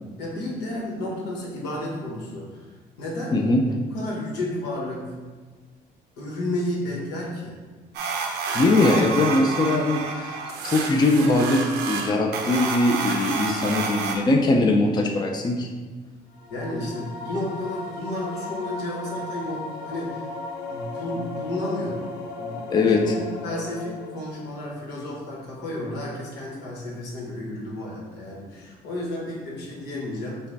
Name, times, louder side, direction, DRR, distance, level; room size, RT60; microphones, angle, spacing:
voice 1, 0.2-2.7 3.0-3.5 3.9-5.1 6.2-7.6 16.5-20.3 20.7-22.0 22.4-30.4, left 1 dB, 85° left, -2 dB, 1.3 m, -32 dB
voice 2, 3.3-3.6 8.5-10.4 10.6-11.6 11.9-15.7 22.7-23.0, left 2 dB, 25° left, 2 dB, 0.5 m, -21 dB
sound 1, 7.9-14.1, right 5 dB, 75° right, 0.6 m, -29 dB
sound 2, 16.3-24.5, left 3 dB, 60° left, 0.7 m, -36 dB
5.5 x 2.2 x 4.0 m, 1.4 s
cardioid pair, 110°, 17 cm